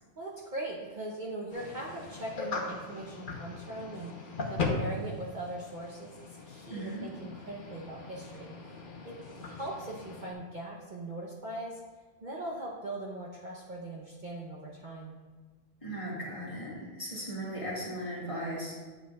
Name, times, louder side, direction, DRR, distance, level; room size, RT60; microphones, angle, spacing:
voice 1, 0.2-8.5 9.0-11.8 12.2-15.1, right 1 dB, 45° right, -4 dB, 0.8 m, -40 dB
sound 1, 1.5-10.3, left 3 dB, 45° left, 0.9 m, -39 dB
voice 2, 6.7-7.1 15.8-18.8, right 1 dB, 25° left, -6 dB, 1.8 m, -37 dB
9.0 x 7.6 x 2.3 m, 1.3 s
omnidirectional pair, 1.3 m